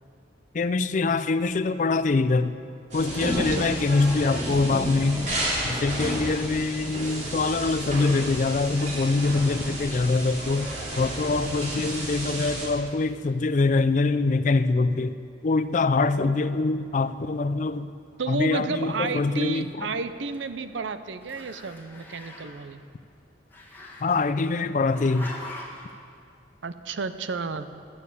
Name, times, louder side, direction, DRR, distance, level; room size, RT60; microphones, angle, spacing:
voice 1, 0.5-2.5 2.9-5.3 5.6-10.7 11.0-15.1 15.4-17.9 18.3-19.9 24.0-25.3, left 3 dB, 45° left, 13 dB, 0.4 m, -24 dB
sound 1, 2.9-12.7, right 1 dB, 40° right, 3.0 m, -31 dB
voice 2, 3.3-3.7 18.2-22.8 26.6-27.7, right 4 dB, 85° right, 11 dB, 0.6 m, -32 dB
Growling, 19.7-20.9 21.2-22.6 23.5-24.5 24.9-25.9, left 2 dB, 10° left, 1.3 m, -43 dB
11.5 x 7.1 x 8.4 m, 2.3 s
head